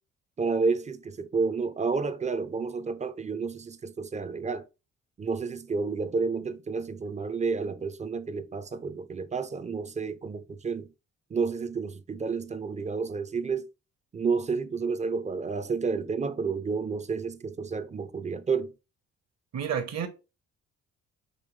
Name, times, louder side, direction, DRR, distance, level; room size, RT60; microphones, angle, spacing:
voice 1, 0.4-4.6 5.2-10.9 11.3-13.7 14.1-18.7, right 4 dB, 25° right, 0.5 m, -30 dB
voice 2, 19.5-20.1, right 8 dB, 60° right, 1.1 m, -30 dB
5.4 x 3.0 x 3.2 m
cardioid pair, 90°, 30 cm